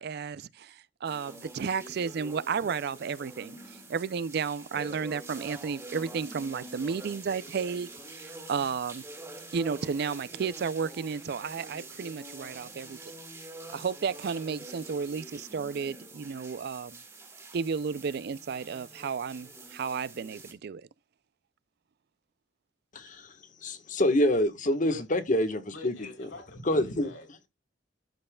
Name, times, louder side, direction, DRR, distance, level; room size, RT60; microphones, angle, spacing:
voice 1, 0.0-9.0 9.5-13.0 13.7-17.0 17.5-20.8, right 6 dB, 60° right, 0.4 m, -33 dB
sound 1, 1.0-20.5, right 2 dB, 15° right, 2.1 m, -46 dB
voice 2, 22.9-23.3 23.6-25.9 26.7-27.1, left 1 dB, 45° left, 1.4 m, -26 dB
voice 3, 24.6-25.0 25.7-27.3, left 3 dB, 85° left, 3.5 m, -46 dB
13.0 x 5.4 x 2.3 m
head